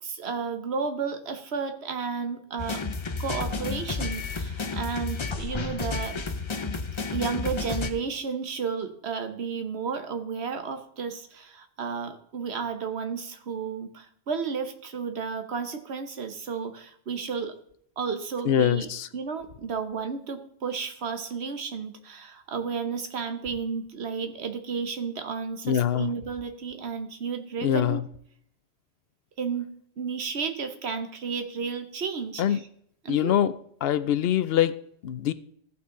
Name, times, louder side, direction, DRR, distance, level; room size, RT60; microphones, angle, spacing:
voice 1, 0.0-2.8 3.2-6.2 7.1-17.5 18.0-28.0 29.4-29.7 30.0-32.7 33.0-33.4, right 5 dB, 70° right, 1.3 m, -32 dB
sound 1, 2.6-7.9, left 4 dB, 35° left, 0.6 m, -31 dB
voice 2, 18.5-19.1 25.6-26.1 27.6-28.0 32.4-32.6 33.1-33.5 33.8-34.8 35.0-35.3, left 10 dB, 65° left, 0.8 m, -23 dB
14.5 x 5.8 x 3.7 m
omnidirectional pair, 1.1 m